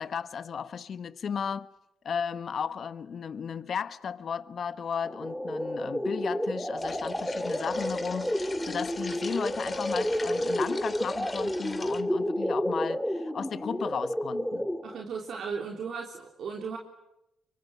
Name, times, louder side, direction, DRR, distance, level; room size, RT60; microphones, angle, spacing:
voice 1, 0.0-1.7 2.0-14.7, left 7 dB, 55° left, 1.1 m, -35 dB
sound 1, 5.0-15.0, equal, 5° left, 2.0 m, -31 dB
sound 2, 6.8-12.0, left 3 dB, 25° left, 2.7 m, -42 dB
voice 2, 14.8-16.8, right 5 dB, 60° right, 3.5 m, -36 dB
26.5 x 24.0 x 9.3 m
cardioid pair, 90°, 0 cm